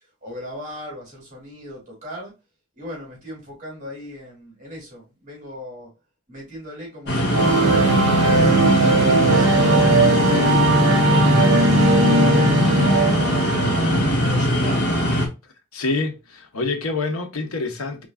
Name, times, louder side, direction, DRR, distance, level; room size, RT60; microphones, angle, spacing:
voice 1, 0.2-2.3 2.7-5.9 6.3-11.6 11.9-15.1, equal, 35° right, 2.7 m, -37 dB
sound 1, 7.1-15.3, equal, 55° left, 1.5 m, -21 dB
sound 2, 7.3-14.2, right 2 dB, 65° right, 1.1 m, -18 dB
voice 2, 15.7-18.1, left 3 dB, 90° left, 1.1 m, -26 dB
4.6 x 3.8 x 2.3 m
head